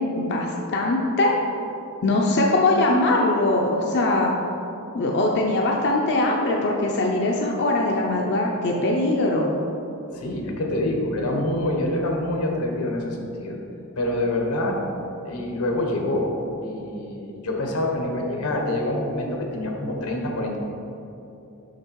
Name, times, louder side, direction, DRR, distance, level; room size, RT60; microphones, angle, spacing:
voice 1, 0.2-1.3 2.0-4.3 4.9-9.5, left 2 dB, 50° left, -1 dB, 0.6 m, -21 dB
voice 2, 10.1-13.6 14.0-14.8 15.2-16.3 16.6-20.6, left 1 dB, 85° left, 1 dB, 1.2 m, -26 dB
6.6 x 5.8 x 4.6 m, 2.9 s
head